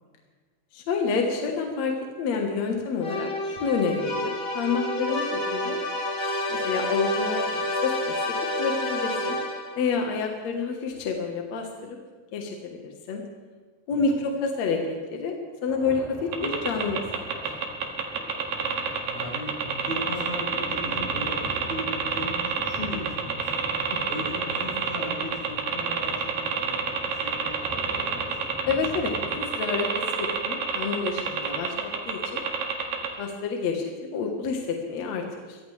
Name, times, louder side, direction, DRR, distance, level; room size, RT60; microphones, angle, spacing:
voice 1, 0.7-5.8 6.5-8.2 8.6-9.4 9.8-12.0 12.3-13.2 13.9-15.3 15.6-17.4 28.7-32.4 33.2-33.8 34.1-35.6, left 4 dB, 60° left, 2 dB, 2.2 m, -29 dB
sound 1, 3.0-9.9, left 1 dB, 40° left, 0.8 m, -29 dB
sound 2, 15.7-29.5, equal, ahead, 1.3 m, -43 dB
sound 3, 16.3-33.1, right 7 dB, 90° right, 3.4 m, -27 dB
voice 2, 19.0-23.7 24.0-26.1 26.4-28.3, left 1 dB, 55° right, -10 dB, 6.8 m, -37 dB
23.0 x 17.0 x 3.3 m, 1.4 s
omnidirectional pair, 3.9 m